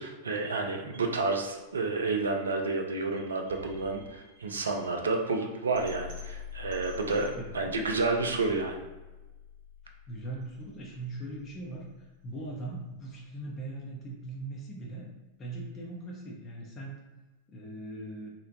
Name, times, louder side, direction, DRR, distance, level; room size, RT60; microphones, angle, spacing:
voice 1, 0.0-8.8, right 3 dB, 70° right, 3 dB, 0.4 m, -30 dB
sound 1, 0.9-12.9, left 6 dB, 45° right, 0.8 m, -48 dB
voice 2, 10.1-15.1 15.4-17.0 17.5-18.3, right 2 dB, 30° left, -2 dB, 0.5 m, -40 dB
2.8 x 2.0 x 2.7 m, 1.1 s
figure-of-eight pair, 90°, 0 cm